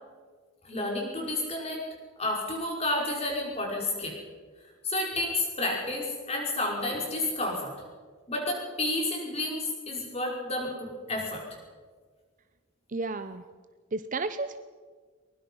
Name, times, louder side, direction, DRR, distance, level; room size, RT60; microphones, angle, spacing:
voice 1, 0.6-1.9 2.2-4.2 4.8-7.7 8.3-11.4, left 2 dB, 30° left, -1 dB, 5.5 m, -31 dB
voice 2, 12.9-13.4 13.9-14.6, right 3 dB, 40° right, 11 dB, 0.7 m, -32 dB
23.0 x 20.5 x 5.6 m, 1.5 s
head